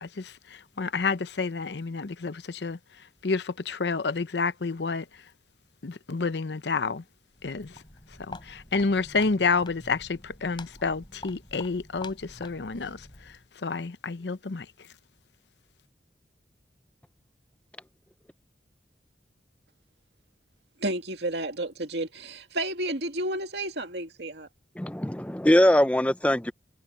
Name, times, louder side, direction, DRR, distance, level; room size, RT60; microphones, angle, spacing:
voice 1, 0.0-2.8 3.2-5.1 5.8-7.0 7.4-7.7 8.3-13.1 13.6-14.7, left 4 dB, 80° left, 0.7 m, -29 dB
Walk footsteps, 7.3-13.5, left 2 dB, 25° left, 4.1 m, -47 dB
voice 2, 20.8-24.5, right 1 dB, 75° right, 2.3 m, -31 dB
voice 3, 24.8-26.5, left 1 dB, 5° left, 0.5 m, -21 dB
head